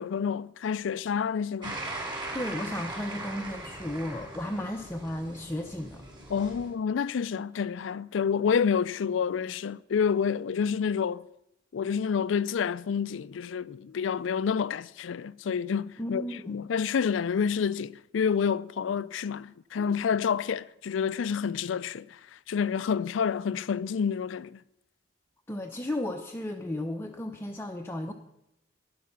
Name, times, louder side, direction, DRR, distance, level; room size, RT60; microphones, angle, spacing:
voice 1, 0.0-1.8 6.3-11.3 11.7-24.6, left 6 dB, 80° left, 0.4 m, -28 dB
sound 1, 1.6-6.7, right 2 dB, 25° right, 4.4 m, -39 dB
voice 2, 2.3-6.0 16.0-16.6 25.5-28.1, left 1 dB, 15° left, 0.6 m, -34 dB
12.0 x 10.0 x 5.9 m
head